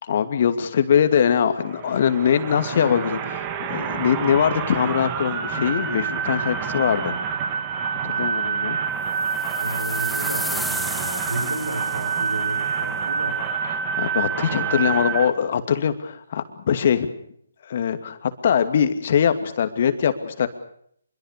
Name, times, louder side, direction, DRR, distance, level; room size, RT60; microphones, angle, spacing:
voice 1, 0.0-7.2 8.0-8.8 14.0-17.1 17.6-20.5, left 8 dB, 45° left, 8 dB, 2.6 m, -22 dB
sound 1, 1.6-15.3, right 7 dB, 25° right, 2.7 m, -27 dB
sound 2, 9.2-12.4, left 1 dB, ahead, 0.9 m, -33 dB
voice 2, 9.6-13.4 14.5-14.9, right 1 dB, 85° right, 4 dB, 5.8 m, -33 dB
26.0 x 23.0 x 6.8 m, 0.67 s
figure-of-eight pair, 145°, 0 cm